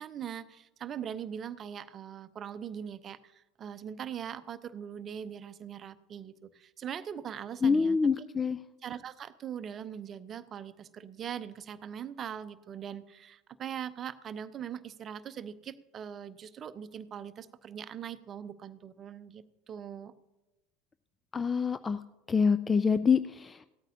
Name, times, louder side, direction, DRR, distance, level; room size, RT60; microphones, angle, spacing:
voice 1, 0.0-8.0 8.8-20.1, right 8 dB, 35° right, 14 dB, 0.7 m, -41 dB
voice 2, 7.6-8.6 21.3-22.0 22.3-23.7, left 5 dB, 20° left, 13 dB, 0.4 m, -26 dB
16.5 x 13.0 x 2.8 m, 1.0 s
figure-of-eight pair, 75°, 0 cm